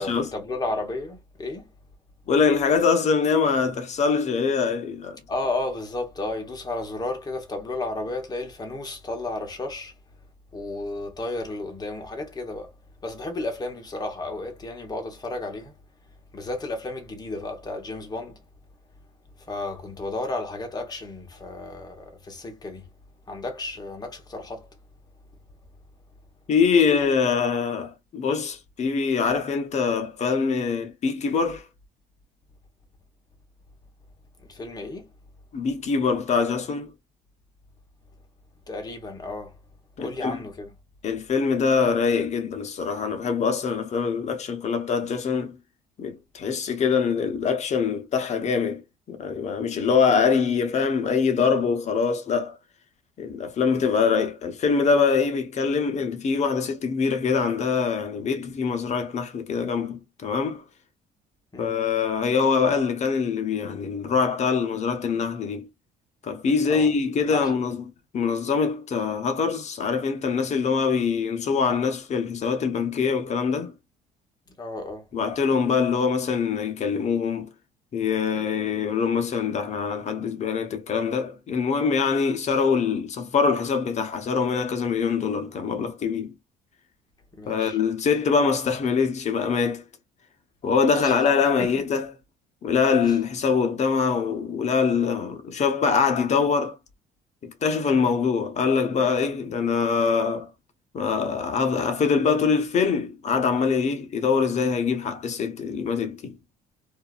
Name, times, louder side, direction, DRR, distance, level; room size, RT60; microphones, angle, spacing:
voice 1, 0.0-1.7 5.3-9.9 10.5-12.7 13.0-15.7 16.3-18.4 19.4-22.9 23.3-24.7 34.4-35.1 38.7-39.6 40.0-40.8 61.5-61.7 66.7-66.9 67.3-67.6 74.5-75.1 87.3-87.8 91.0-91.2 91.6-91.8 93.1-93.2, left 2 dB, 25° left, 1.0 m, -33 dB
voice 2, 2.3-5.2 26.5-31.7 35.5-36.9 40.0-40.4 41.0-45.6 46.0-48.8 49.1-52.6 53.2-60.6 61.6-65.7 66.2-67.8 68.1-73.7 75.1-77.5 77.9-86.3 87.5-89.8 90.6-92.1 92.6-96.8 97.4-100.5 100.9-106.4, left 5 dB, 40° left, 0.8 m, -24 dB
2.6 x 2.4 x 2.4 m
cardioid pair, 110°, 17 cm